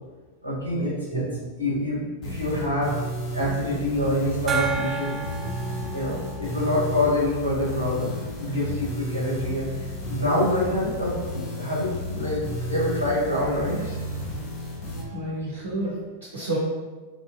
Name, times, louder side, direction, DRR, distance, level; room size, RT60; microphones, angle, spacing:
voice 1, 0.4-1.3 1.6-2.9 3.3-5.2 5.9-9.7 10.1-12.4 12.7-14.0 14.9-15.2, left 1 dB, 80° left, -6 dB, 1.2 m, -26 dB
voice 2, 1.1-1.4 15.1-16.6, right 2 dB, 60° right, -7 dB, 0.8 m, -30 dB
sound 1, 2.2-15.0, equal, 35° left, 0.9 m, -33 dB
Gong, 4.5-7.7, right 6 dB, 20° right, 0.3 m, -32 dB
3.5 x 2.6 x 2.4 m, 1.3 s
figure-of-eight pair, 90°, 0 cm